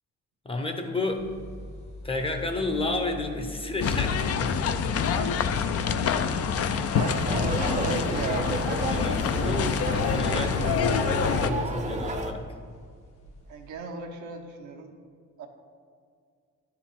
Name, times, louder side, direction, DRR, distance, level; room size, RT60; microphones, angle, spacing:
voice 1, 0.4-1.3 2.0-4.6 8.9-9.2 9.4-12.5, left 2 dB, 20° left, 5 dB, 0.7 m, -31 dB
sound 1, 1.1-13.7, left 1 dB, 90° left, 1.2 m, -40 dB
sound 2, 3.8-11.5, left 6 dB, 50° left, 0.5 m, -26 dB
sound 3, 6.9-12.3, right 3 dB, 25° right, 0.7 m, -32 dB
voice 2, 6.9-9.7 13.5-14.9 15.4-15.5, right 4 dB, 75° right, 3 dB, 1.0 m, -37 dB
10.5 x 4.6 x 3.8 m, 2.1 s
cardioid pair, 90°, 30 cm